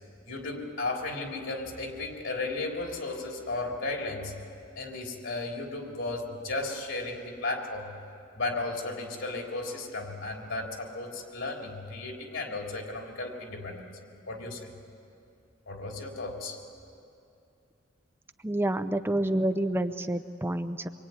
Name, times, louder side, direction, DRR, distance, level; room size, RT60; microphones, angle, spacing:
voice 1, 0.3-4.3 4.8-8.0 8.3-14.0 14.3-14.7 15.7-16.6, left 2 dB, 70° left, 1 dB, 3.7 m, -35 dB
voice 2, 18.4-20.9, right 1 dB, 10° right, 9 dB, 0.6 m, -28 dB
25.0 x 24.0 x 9.7 m, 2.7 s
head